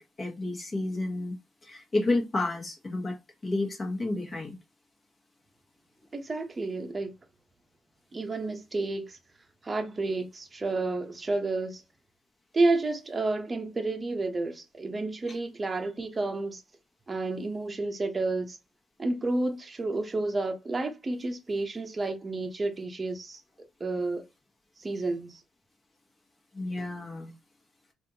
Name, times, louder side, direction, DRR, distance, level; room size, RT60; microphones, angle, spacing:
voice 1, 0.0-1.4 1.6-4.6 26.5-27.3, left 2 dB, 30° left, 1.4 m, -31 dB
voice 2, 6.1-7.1 8.1-9.2 9.6-11.8 12.5-16.6 17.1-18.6 19.0-23.4 23.8-24.3 24.8-25.4, right 2 dB, 25° right, 0.8 m, -30 dB
3.4 x 2.6 x 2.8 m
cardioid pair, 90°, 0 cm